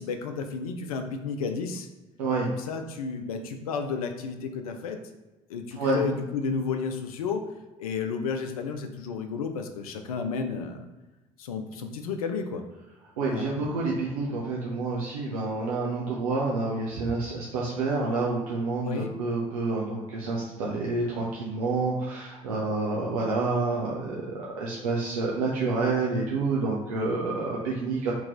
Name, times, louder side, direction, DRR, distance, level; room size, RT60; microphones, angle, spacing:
voice 1, 0.0-1.9 2.5-5.0 5.5-7.5 7.8-10.9 11.4-12.7 13.3-13.5 18.8-19.1, left 5 dB, 80° left, 6 dB, 0.4 m, -32 dB
voice 2, 2.2-2.5 5.8-6.0 13.2-28.1, right 3 dB, 80° right, -4 dB, 0.6 m, -28 dB
3.0 x 2.9 x 3.7 m, 1.1 s
hypercardioid pair, 55°, 18 cm